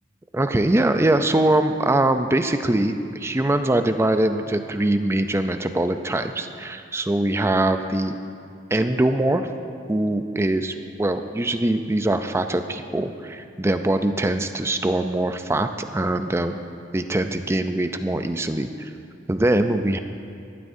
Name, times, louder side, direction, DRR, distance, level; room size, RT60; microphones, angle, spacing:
voice 1, 0.3-8.2 8.7-9.5 9.9-16.6 16.9-18.9 19.3-20.0, right 1 dB, 15° right, 8 dB, 0.4 m, -22 dB
18.5 x 12.0 x 2.7 m, 2.5 s
head